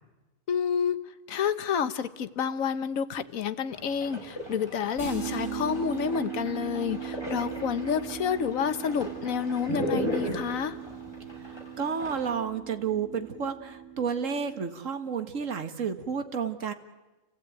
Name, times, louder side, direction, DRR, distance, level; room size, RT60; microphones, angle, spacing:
voice 1, 0.5-1.0 1.3-10.8, left 7 dB, 85° left, 13 dB, 1.4 m, -29 dB
sound 1, 3.7-12.3, equal, 20° left, 6.4 m, -37 dB
sound 2, 5.0-14.6, right 8 dB, 35° left, 7.6 m, -39 dB
voice 2, 11.4-16.7, right 6 dB, 70° right, 8 dB, 1.8 m, -31 dB
29.5 x 16.0 x 9.2 m, 1.2 s
omnidirectional pair, 1.4 m